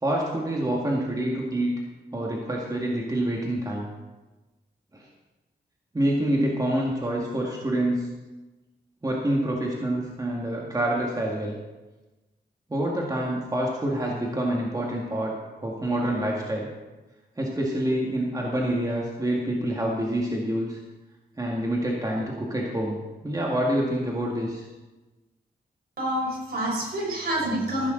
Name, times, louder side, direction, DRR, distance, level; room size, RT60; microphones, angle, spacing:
voice 1, 0.0-1.7 2.1-3.9 4.9-5.0 5.9-8.1 9.0-11.6 12.7-15.3 15.6-16.7 17.4-20.8 21.4-23.0 23.2-24.7, right 1 dB, 20° right, -2 dB, 2.1 m, -27 dB
voice 2, 26.0-27.9, right 1 dB, 65° right, -2 dB, 5.1 m, -27 dB
15.0 x 11.0 x 4.0 m, 1.1 s
cardioid pair, 90°, 17 cm